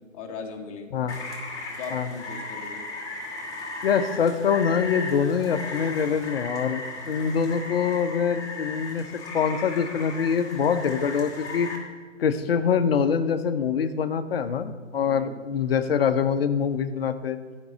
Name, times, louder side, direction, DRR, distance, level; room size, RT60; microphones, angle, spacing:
voice 1, 0.1-1.0 1.8-2.9 15.1-15.4, left 5 dB, 25° left, 2 dB, 1.0 m, -38 dB
Rain, 1.1-11.8, left 3 dB, 10° left, 1.3 m, -36 dB
voice 2, 3.8-11.7 12.2-17.4, left 7 dB, 50° left, 11 dB, 0.7 m, -24 dB
9.4 x 5.4 x 7.7 m, 1.5 s
hypercardioid pair, 145°, 38 cm